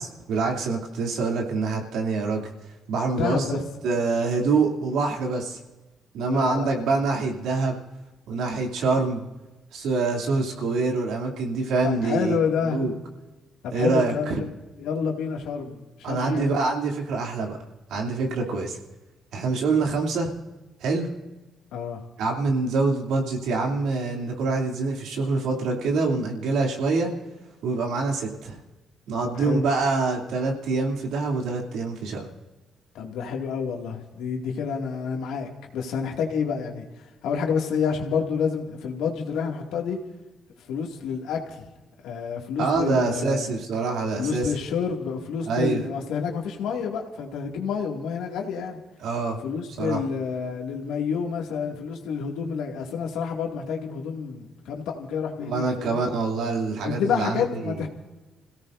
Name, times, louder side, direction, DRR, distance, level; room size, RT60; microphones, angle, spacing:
voice 1, 0.3-2.5 2.9-3.4 3.8-5.6 6.1-7.8 8.3-9.2 9.7-12.4 12.7-12.9 13.7-14.4 16.0-17.6 17.9-18.8 19.3-20.3 20.8-21.1 22.2-27.1 27.6-28.6 29.1-32.3 42.6-44.5 45.5-45.8 49.0-49.4 49.8-50.0 55.4-57.8, right 3 dB, 85° right, 1 dB, 2.9 m, -25 dB
voice 2, 3.1-3.6 6.2-6.8 11.8-12.8 13.6-14.5 14.8-16.6 18.4-18.6 21.7-22.0 29.2-29.6 32.9-40.0 40.7-41.7 42.0-43.5 44.2-48.8 49.4-56.0 56.8-57.9, left 6 dB, 90° left, 1 dB, 2.2 m, -29 dB
29.0 x 17.0 x 2.6 m, 1.1 s
cardioid pair, 90°, 0 cm